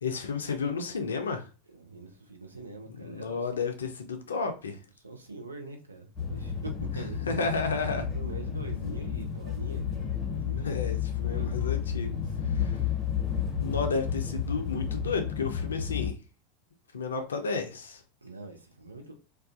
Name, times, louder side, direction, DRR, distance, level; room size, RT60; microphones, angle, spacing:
voice 1, 0.0-1.5 3.0-4.8 7.3-8.1 10.6-12.1 12.5-12.8 13.6-16.2 16.9-18.0, left 4 dB, 75° left, 0.4 m, -32 dB
voice 2, 1.7-3.4 5.0-7.2 8.1-10.7 11.2-12.2 13.7-14.1 18.2-19.1, right 2 dB, 85° right, 0.4 m, -44 dB
sound 1, 6.2-16.1, left 8 dB, 30° left, 0.6 m, -31 dB
2.3 x 2.2 x 2.4 m
figure-of-eight pair, 85°, 0 cm